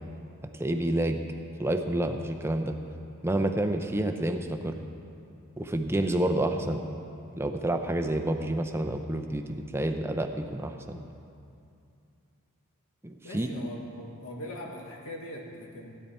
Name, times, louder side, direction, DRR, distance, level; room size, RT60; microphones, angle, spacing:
voice 1, 0.6-1.2 1.6-2.8 3.2-4.7 5.6-6.8 7.4-11.0 13.0-13.5, right 1 dB, 10° right, 5 dB, 0.5 m, -29 dB
voice 2, 13.2-16.0, left 1 dB, 70° left, -1 dB, 1.6 m, -41 dB
16.5 x 9.4 x 4.2 m, 2.6 s
head